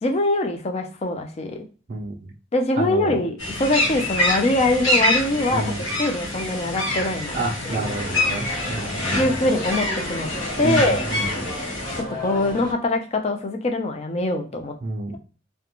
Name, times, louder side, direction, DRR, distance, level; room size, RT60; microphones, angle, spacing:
voice 1, 0.0-1.6 2.5-5.7 6.0-7.4 7.7-7.8 9.2-10.3 10.6-11.1 12.0-14.8, left 2 dB, 35° left, 5 dB, 0.4 m, -23 dB
voice 2, 1.9-2.3 2.8-3.2 5.5-5.9 7.3-9.3 10.6-11.3 14.8-15.2, right 2 dB, 40° right, -2 dB, 0.4 m, -29 dB
sound 1, 3.4-12.0, left 1 dB, 75° left, 1.1 m, -26 dB
sound 2, 7.7-12.7, left 1 dB, 50° left, 0.9 m, -33 dB
2.4 x 2.2 x 2.9 m, 0.36 s
head